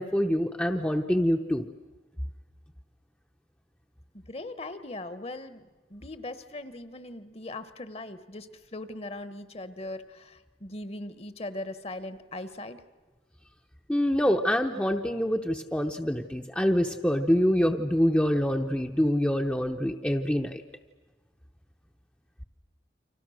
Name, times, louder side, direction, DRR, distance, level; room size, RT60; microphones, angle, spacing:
voice 1, 0.0-1.7 13.9-20.6, equal, 5° left, 4 dB, 0.8 m, -25 dB
voice 2, 4.1-12.8, left 2 dB, 35° left, 12 dB, 1.1 m, -40 dB
29.5 x 25.5 x 6.4 m, 1.3 s
head